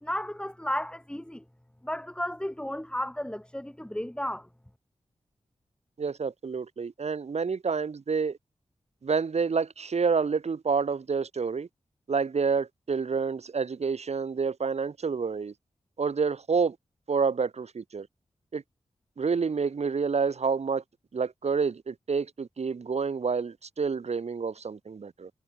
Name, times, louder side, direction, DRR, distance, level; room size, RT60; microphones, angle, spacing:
voice 1, 0.0-1.4 1.8-4.5, left 1 dB, 10° left, 4.4 m, -33 dB
voice 2, 6.0-8.4 9.0-11.7 12.1-15.5 16.0-16.7 17.1-18.1 18.5-18.6 19.2-20.8 21.1-25.3, right 5 dB, 70° right, 3.3 m, -28 dB
cardioid pair, 55°, 12 cm